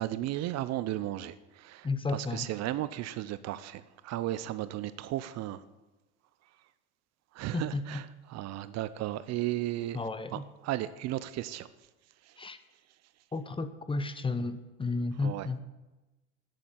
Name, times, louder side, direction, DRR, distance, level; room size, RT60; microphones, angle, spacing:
voice 1, 0.0-5.6 7.3-10.0 10.3-11.7 12.3-12.4 15.2-15.6, right 14 dB, 50° right, 15 dB, 0.7 m, -35 dB
voice 2, 1.8-2.5 7.5-8.0 9.9-10.5 12.4-12.6 13.3-15.6, left 3 dB, 15° left, 11 dB, 0.9 m, -33 dB
10.5 x 8.5 x 8.1 m, 1.1 s
hypercardioid pair, 85°, 34 cm